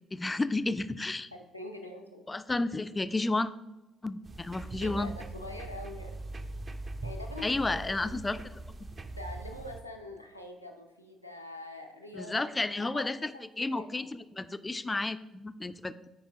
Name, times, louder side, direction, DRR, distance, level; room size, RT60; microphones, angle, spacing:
voice 1, 0.1-1.3 2.3-3.5 4.0-5.2 7.4-8.9 12.1-13.3 13.6-16.1, left 2 dB, 20° left, 13 dB, 0.4 m, -32 dB
voice 2, 1.3-2.3 4.8-6.2 7.0-8.2 9.2-12.5 12.8-14.0, left 1 dB, 90° left, 2 dB, 0.6 m, -44 dB
sound 1, 4.2-9.8, right 2 dB, 35° right, 0.6 m, -41 dB
8.8 x 4.9 x 3.6 m, 1.0 s
figure-of-eight pair, 45°, 0 cm